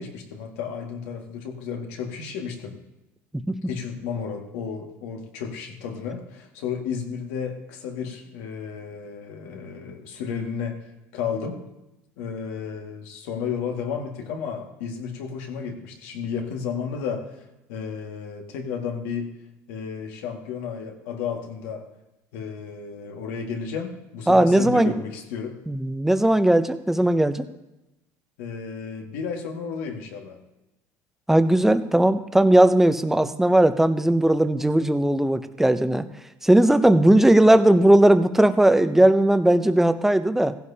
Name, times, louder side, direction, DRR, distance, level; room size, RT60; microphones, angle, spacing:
voice 1, 0.0-2.8 3.7-10.9 11.1-11.6 12.2-19.3 19.7-21.9 22.3-25.6 28.4-30.4, left 6 dB, 85° left, 2 dB, 2.0 m, -32 dB
voice 2, 24.3-25.0 25.7-27.5 31.3-36.1 36.4-40.6, right 1 dB, 5° right, 10 dB, 0.7 m, -18 dB
16.0 x 15.5 x 2.9 m, 0.95 s
supercardioid pair, 115°, 7 cm